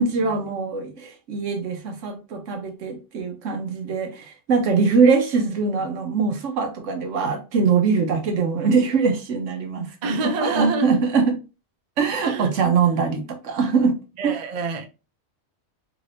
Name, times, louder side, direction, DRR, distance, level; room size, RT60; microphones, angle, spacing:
voice 1, 0.0-11.3 12.0-13.9, right 5 dB, 75° right, 1.1 m, -22 dB
voice 2, 10.0-10.9 12.2-12.5 14.2-14.9, right 3 dB, 50° right, 0.5 m, -26 dB
3.6 x 2.6 x 3.2 m
omnidirectional pair, 1.3 m